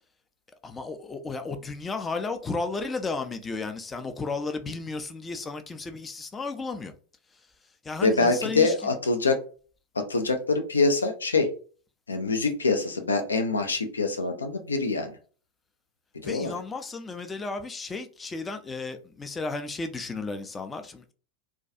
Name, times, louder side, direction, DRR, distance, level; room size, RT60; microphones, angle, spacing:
voice 1, 0.6-6.9 7.8-8.7 16.2-21.1, left 3 dB, 15° left, 0.4 m, -33 dB
voice 2, 8.0-9.4 9.9-11.5 12.1-15.2 16.2-16.5, left 3 dB, 75° left, 0.4 m, -25 dB
2.3 x 2.2 x 2.6 m
figure-of-eight pair, 90°, 0 cm